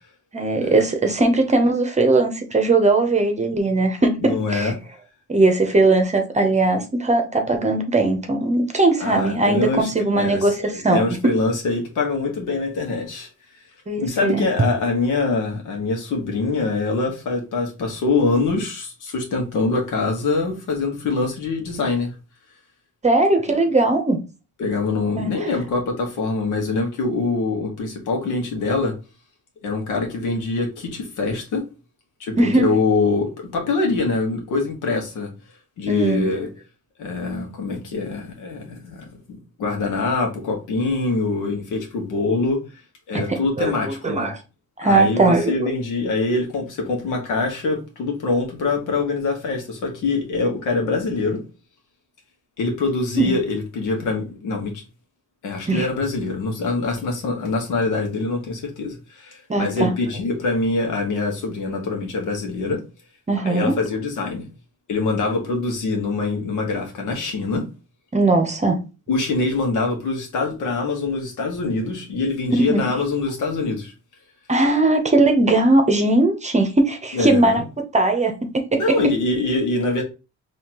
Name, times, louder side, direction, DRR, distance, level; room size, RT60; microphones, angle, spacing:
voice 1, 0.3-4.7 5.3-11.3 13.9-14.5 23.0-24.2 25.2-25.5 32.4-32.7 35.9-36.3 43.1-44.4 44.8-45.7 53.2-53.3 55.7-55.9 59.5-59.9 63.3-63.7 68.1-68.8 72.7-72.9 74.5-77.6 77.9-78.8, right 2 dB, 25° right, 0.8 m, -19 dB
voice 2, 4.2-4.7 9.0-13.3 14.0-22.1 23.5-23.6 24.6-28.9 29.6-31.6 32.2-35.3 35.8-36.5 37.0-39.1 39.6-42.6 43.1-44.3 44.8-51.4 52.6-54.8 55.4-62.8 63.4-64.5 64.9-67.6 69.1-73.9 77.1-77.6 78.7-80.0, left 3 dB, 80° left, 1.3 m, -24 dB
4.3 x 2.9 x 2.9 m
cardioid pair, 90°, 30 cm